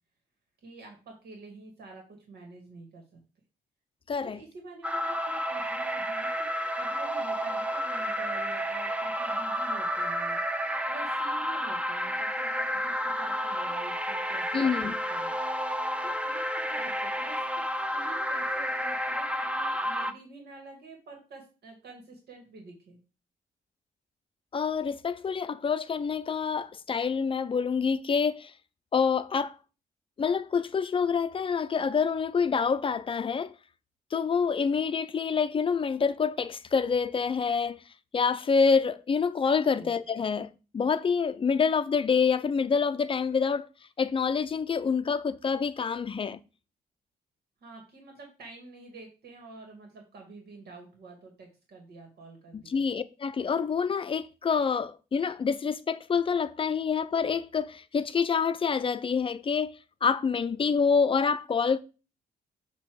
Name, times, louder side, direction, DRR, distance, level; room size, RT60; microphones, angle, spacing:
voice 1, 0.6-3.2 4.2-15.4 16.0-16.4 16.7-17.5 17.9-23.0 39.8-39.9 47.6-52.8, right 3 dB, 75° right, 2.2 m, -48 dB
voice 2, 4.1-4.4 14.5-14.9 24.5-28.5 28.9-29.6 30.2-33.5 34.1-37.8 38.1-43.7 44.0-46.4 52.5-59.7 60.0-61.8, left 5 dB, 35° left, 0.5 m, -27 dB
sound 1, 4.8-20.1, equal, 10° right, 0.6 m, -31 dB
8.4 x 3.0 x 6.2 m
cardioid pair, 120°, 16 cm